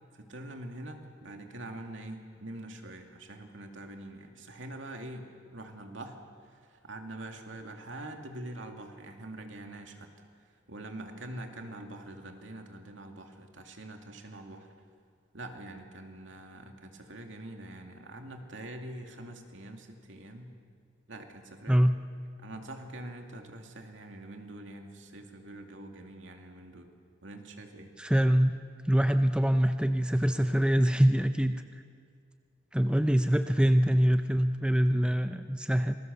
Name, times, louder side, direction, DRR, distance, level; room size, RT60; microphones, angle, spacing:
voice 1, 0.1-10.1 10.7-14.7 15.3-20.5 21.1-21.8 22.4-26.9 27.2-27.9, right 1 dB, 75° right, 4 dB, 2.5 m, -44 dB
voice 2, 28.0-28.5 28.9-31.6 32.7-36.0, equal, 5° right, 8 dB, 0.6 m, -24 dB
27.0 x 20.5 x 6.9 m, 2.1 s
head